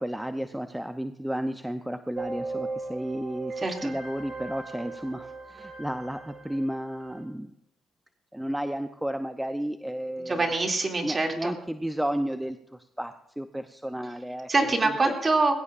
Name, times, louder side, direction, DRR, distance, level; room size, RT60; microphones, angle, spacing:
voice 1, 0.0-7.5 8.3-10.5 11.0-12.6 13.0-14.7 15.0-15.3, right 1 dB, 5° right, 8 dB, 0.7 m, -32 dB
sound 1, 2.1-7.2, right 3 dB, 45° right, 3.2 m, -38 dB
voice 2, 3.6-3.9 10.2-11.5 14.5-15.6, right 3 dB, 30° right, 2 dB, 2.6 m, -25 dB
20.5 x 16.5 x 2.6 m, 0.76 s
cardioid pair, 90°, 0 cm